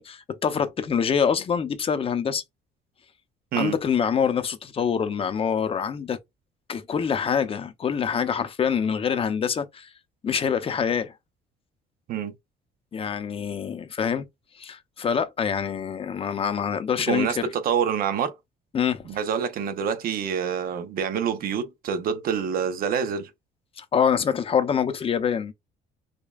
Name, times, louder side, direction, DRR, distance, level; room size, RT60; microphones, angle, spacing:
voice 1, 0.0-2.4 3.5-6.2 6.7-9.9 10.2-11.1 12.9-14.2 14.6-17.4 18.7-19.1 23.8-25.5, left 7 dB, 35° left, 0.7 m, -25 dB
voice 2, 17.1-18.3 19.1-23.3, right 7 dB, 60° right, 0.8 m, -26 dB
5.0 x 2.3 x 2.3 m
cardioid pair, 110°, 17 cm